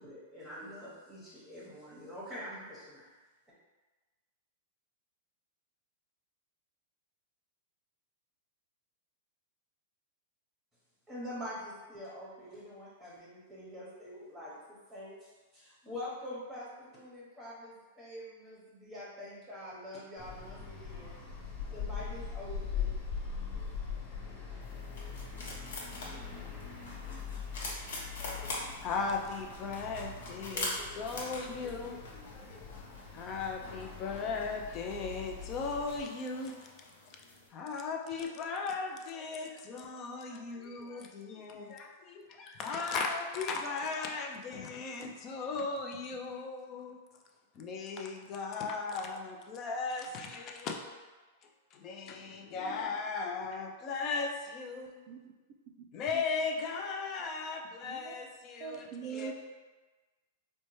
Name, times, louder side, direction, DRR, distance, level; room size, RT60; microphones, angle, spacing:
voice 1, 0.0-3.1 11.1-21.2 21.7-22.9, left 1 dB, 5° right, -8 dB, 0.9 m, -45 dB
sound 1, 20.2-36.0, left 6 dB, 50° left, 1.1 m, -42 dB
sound 2, 24.6-37.5, left 2 dB, 75° left, 1.0 m, -44 dB
voice 2, 28.2-32.6 33.1-36.5 37.5-47.0 47.6-50.9 51.7-55.0 55.9-59.3, left 4 dB, 30° left, 2 dB, 0.4 m, -37 dB
voice 3, 57.6-58.2 58.6-59.3, right 6 dB, 35° right, -2 dB, 0.4 m, -42 dB
4.1 x 2.2 x 3.1 m, 1.3 s
supercardioid pair, 150°, 0 cm